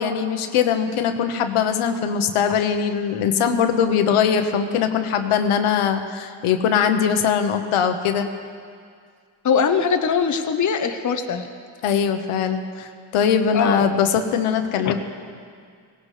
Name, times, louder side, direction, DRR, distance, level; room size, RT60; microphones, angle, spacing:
voice 1, 0.0-8.3 11.8-15.0, left 7 dB, 90° left, 7 dB, 1.1 m, -21 dB
voice 2, 9.4-11.5 13.5-13.9 14.8-14.9, left 6 dB, 35° left, 6 dB, 0.9 m, -21 dB
18.0 x 17.5 x 3.3 m, 2.2 s
cardioid pair, 110°, 49 cm